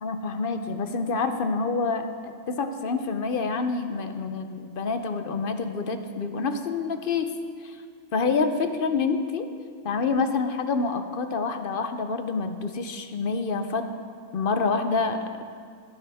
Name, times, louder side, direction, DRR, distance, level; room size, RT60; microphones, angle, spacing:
voice 1, 0.0-7.3 7.6-7.8 8.1-9.5 9.8-13.8 14.3-15.4, left 4 dB, 50° left, 8 dB, 0.8 m, -27 dB
18.0 x 10.5 x 3.5 m, 2.1 s
omnidirectional pair, 1.4 m